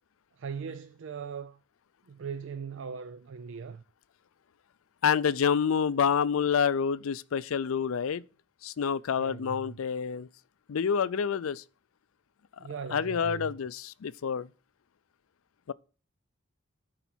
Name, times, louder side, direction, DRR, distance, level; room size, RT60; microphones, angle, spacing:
voice 1, 0.4-1.6 2.1-3.8 9.2-9.8 12.6-13.5, right 6 dB, 65° right, 0.4 m, -39 dB
voice 2, 5.0-8.2 8.6-10.3 10.7-11.6 12.9-14.5 15.7-15.8, left 7 dB, 85° left, 0.4 m, -28 dB
11.0 x 4.6 x 6.1 m
head